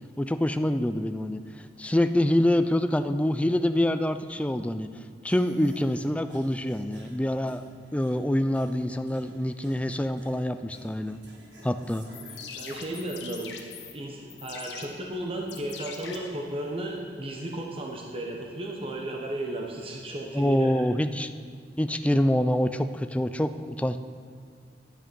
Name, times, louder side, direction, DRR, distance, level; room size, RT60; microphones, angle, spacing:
voice 1, 0.2-1.4 1.8-4.9 5.2-7.6 7.9-11.2 11.6-12.1 20.3-21.3 21.8-24.0, left 1 dB, 5° left, 10 dB, 0.4 m, -26 dB
sound 1, 5.3-12.8, right 1 dB, 75° right, 1.9 m, -52 dB
sound 2, 12.0-17.0, left 6 dB, 75° left, 1.2 m, -43 dB
voice 2, 12.5-13.6 13.9-20.9, right 1 dB, 30° right, 0 dB, 1.1 m, -34 dB
11.5 x 8.7 x 5.3 m, 2.2 s
head